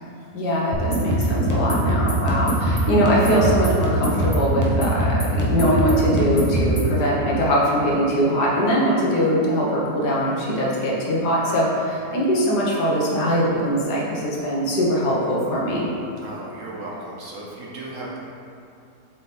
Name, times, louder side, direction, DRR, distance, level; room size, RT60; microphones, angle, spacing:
voice 1, 0.3-15.9, equal, 75° left, -5 dB, 1.7 m, -21 dB
sound 1, 0.7-6.9, right 1 dB, 15° left, 0.7 m, -22 dB
voice 2, 16.2-18.2, right 2 dB, 55° right, -4 dB, 1.1 m, -35 dB
7.4 x 4.7 x 3.3 m, 2.6 s
omnidirectional pair, 1.8 m